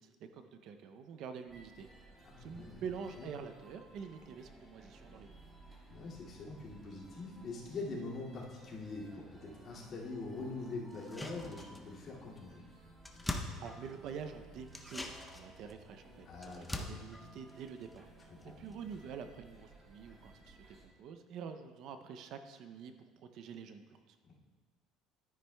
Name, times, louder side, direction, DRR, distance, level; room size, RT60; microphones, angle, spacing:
voice 1, 0.0-5.3 13.3-24.2, right 6 dB, 50° right, 8 dB, 0.5 m, -47 dB
sound 1, 1.5-20.9, right 1 dB, 15° right, 1.4 m, -58 dB
voice 2, 2.2-2.8 3.2-3.3 5.9-12.6 16.2-16.9 18.3-18.5 24.2-24.3, left 3 dB, 35° left, -6 dB, 2.2 m, -44 dB
sound 2, 10.9-12.1 12.4-12.5 12.7-14.2 14.7-18.4 18.7-18.8, left 1 dB, 5° left, 0.6 m, -44 dB
12.5 x 9.8 x 2.2 m, 1.5 s
cardioid pair, 155°, 0 cm